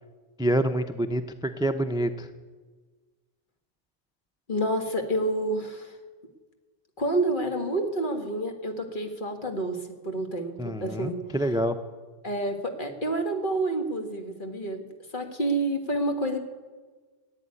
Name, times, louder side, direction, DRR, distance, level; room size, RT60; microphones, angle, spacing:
voice 1, 0.4-2.3 10.6-11.8, right 1 dB, 5° right, 10 dB, 0.4 m, -27 dB
voice 2, 4.5-5.9 7.0-11.2 12.2-14.8 15.1-16.4, right 1 dB, 45° left, 4 dB, 1.9 m, -28 dB
15.5 x 9.2 x 9.7 m, 1.3 s
omnidirectional pair, 1.2 m